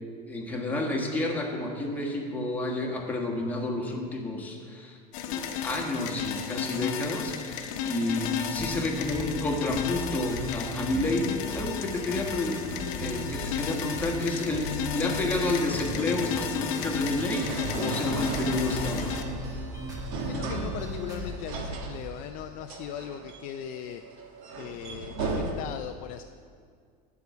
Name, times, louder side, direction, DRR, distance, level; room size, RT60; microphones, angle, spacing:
voice 1, 0.0-5.0 5.3-19.1, left 2 dB, 10° left, -1 dB, 1.3 m, -30 dB
sound 1, 5.1-19.2, left 7 dB, 65° left, 0.9 m, -34 dB
sound 2, 8.6-21.4, equal, 20° right, 1.5 m, -37 dB
sound 3, 13.0-25.5, right 3 dB, 65° right, 1.3 m, -37 dB
voice 2, 20.3-24.0 24.6-26.2, left 11 dB, 45° left, 7 dB, 0.4 m, -38 dB
12.0 x 4.7 x 8.3 m, 2.2 s
supercardioid pair, 150°, 19 cm